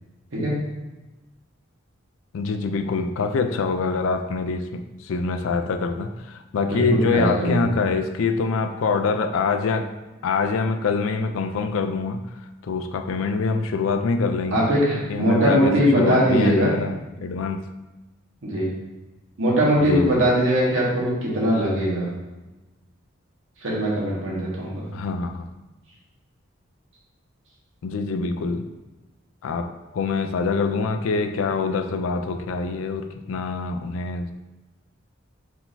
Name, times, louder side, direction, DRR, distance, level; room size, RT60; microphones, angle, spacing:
voice 1, 2.3-9.9 10.2-12.2 12.6-14.6 15.1-17.7 19.8-20.2 24.9-25.5 27.8-28.7 29.4-29.7 29.9-34.3, left 4 dB, 75° left, 7 dB, 0.4 m, -25 dB
voice 2, 6.7-7.7 14.5-16.7 18.4-18.7 19.4-22.1 23.6-24.8, equal, 70° right, -5 dB, 1.4 m, -21 dB
4.7 x 3.7 x 2.6 m, 1.1 s
head